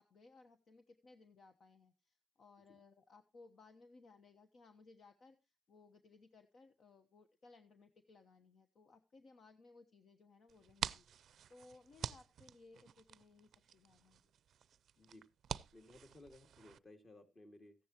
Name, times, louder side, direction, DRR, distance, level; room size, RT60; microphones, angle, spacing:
voice 1, 0.0-14.3, left 3 dB, 60° left, 7 dB, 1.1 m, -63 dB
sound 1, 10.5-16.8, right 9 dB, 70° right, 0.5 m, -47 dB
voice 2, 15.7-17.8, left 2 dB, 35° left, 5 dB, 2.5 m, -59 dB
15.0 x 10.0 x 3.0 m, 0.27 s
cardioid pair, 100°, 0 cm